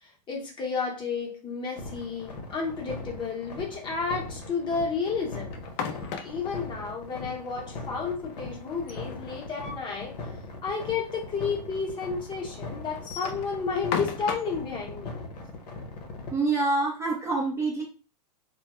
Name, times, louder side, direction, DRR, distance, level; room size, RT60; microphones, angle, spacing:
voice 1, 0.0-5.6 6.2-10.2 10.6-15.1, left 5 dB, 20° left, -1 dB, 0.8 m, -31 dB
sound 1, 1.8-16.3, left 3 dB, 70° left, 0.8 m, -40 dB
sound 2, 5.5-6.6 8.7-10.0 10.3-10.4 10.7-10.8 11.6-11.7 12.9-14.6, left 6 dB, 40° left, 0.4 m, -35 dB
voice 2, 16.3-17.8, right 3 dB, 15° right, -3 dB, 0.5 m, -26 dB
2.1 x 2.1 x 2.9 m, 0.36 s
hypercardioid pair, 120°, 21 cm